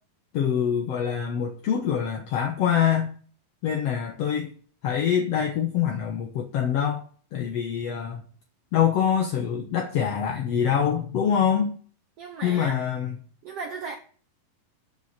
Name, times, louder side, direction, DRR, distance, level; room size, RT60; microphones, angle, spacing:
voice 1, 0.3-3.1 3.6-4.5 4.8-7.1 7.3-8.2 8.7-11.8 12.4-13.2, left 8 dB, 65° left, 1.7 m, -25 dB
voice 2, 12.2-12.8 13.4-14.0, right 4 dB, 80° right, 1.3 m, -36 dB
9.7 x 7.1 x 5.8 m
omnidirectional pair, 4.2 m